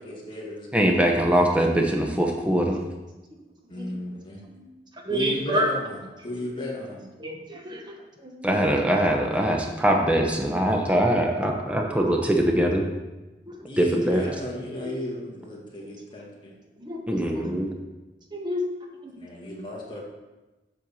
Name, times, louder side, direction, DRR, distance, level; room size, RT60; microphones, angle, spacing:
voice 1, 0.0-1.0 3.7-4.5 5.1-7.1 13.7-16.5 17.2-17.3 19.2-20.0, left 1 dB, 25° left, -3 dB, 1.8 m, -35 dB
voice 2, 0.7-2.7 8.4-12.8 13.8-14.2 17.1-17.7, right 1 dB, 5° right, 1 dB, 0.9 m, -22 dB
voice 3, 4.9-5.7 7.2-8.8 10.2-10.3 11.8-12.1 13.5-13.7 14.8-15.0 16.8-17.5 18.3-18.6 19.0-19.1, equal, 25° right, 1 dB, 1.2 m, -31 dB
7.7 x 4.5 x 6.9 m, 1.1 s
head